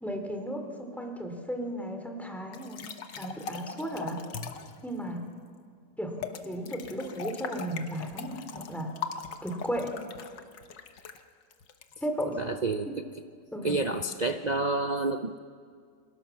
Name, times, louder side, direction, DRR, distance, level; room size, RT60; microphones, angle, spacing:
voice 1, 0.0-2.8 3.2-4.2 4.8-5.2 6.0-6.1 6.4-8.9 9.4-9.9 12.0-12.4 13.5-13.8, equal, ahead, 3 dB, 3.1 m, -34 dB
sound 1, 2.5-4.8 6.2-12.3, left 6 dB, 85° left, 1.9 m, -40 dB
voice 2, 12.4-12.9 13.6-15.4, right 2 dB, 60° right, 6 dB, 0.4 m, -29 dB
28.0 x 23.5 x 7.2 m, 2.1 s
omnidirectional pair, 1.9 m